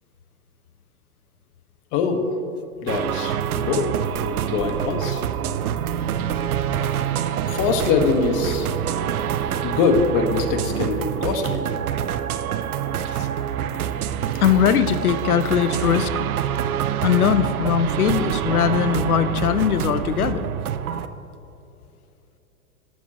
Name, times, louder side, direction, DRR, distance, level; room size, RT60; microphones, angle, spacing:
voice 1, 1.9-2.2 2.8-3.9 4.5-5.2 7.4-8.8 9.6-11.7 12.3-12.4 16.8-16.9 19.2-19.3 20.9-21.1, left 5 dB, 40° left, 5 dB, 1.5 m, -23 dB
sound 1, 2.9-21.1, right 9 dB, 85° right, 0.7 m, -26 dB
voice 2, 14.4-16.1 17.0-20.5, left 8 dB, 90° left, 12 dB, 0.8 m, -20 dB
18.5 x 7.5 x 3.0 m, 2.9 s
hypercardioid pair, 115°, 43 cm